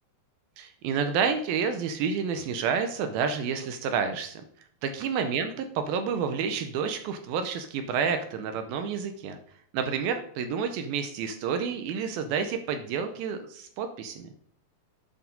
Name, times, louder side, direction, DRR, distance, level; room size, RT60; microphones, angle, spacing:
voice 1, 0.6-4.4 4.8-5.5 5.8-9.4 9.7-14.3, right 6 dB, 80° right, 7 dB, 2.3 m, -29 dB
10.0 x 4.9 x 5.2 m, 0.63 s
omnidirectional pair, 4.7 m